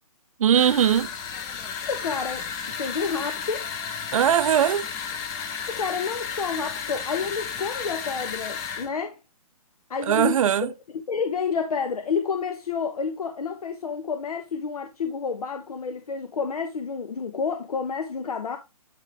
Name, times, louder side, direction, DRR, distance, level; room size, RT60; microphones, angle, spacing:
voice 1, 0.4-1.1 4.1-4.9 10.1-10.7, right 9 dB, 65° right, 0.6 m, -20 dB
sound 1, 0.5-8.9, left 7 dB, 15° left, 0.6 m, -33 dB
voice 2, 1.9-2.5 2.8-3.7 5.7-9.2 9.9-10.7 10.9-18.6, left 5 dB, 85° left, 1.1 m, -29 dB
10.0 x 3.8 x 3.3 m
hypercardioid pair, 160°, 19 cm